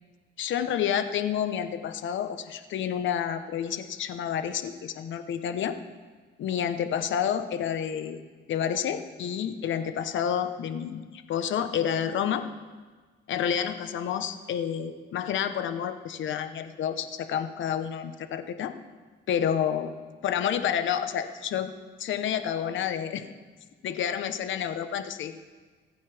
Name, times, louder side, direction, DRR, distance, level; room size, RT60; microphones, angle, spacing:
voice 1, 0.4-5.8 6.4-8.2 8.5-12.5 13.3-18.7 19.3-19.9 20.2-21.7 22.0-23.3 23.8-25.4, left 9 dB, 75° left, 9 dB, 1.1 m, -29 dB
26.5 x 9.4 x 3.5 m, 1.4 s
cardioid pair, 90°, 20 cm